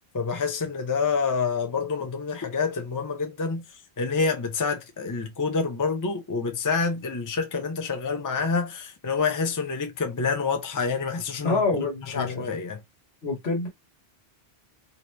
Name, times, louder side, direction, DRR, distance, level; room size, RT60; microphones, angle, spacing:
voice 1, 0.1-3.6 4.0-11.6 12.1-12.8, left 4 dB, 25° left, 0.5 m, -27 dB
voice 2, 11.4-12.5 13.2-13.7, left 3 dB, 75° left, 1.5 m, -26 dB
2.9 x 2.6 x 3.2 m
omnidirectional pair, 1.1 m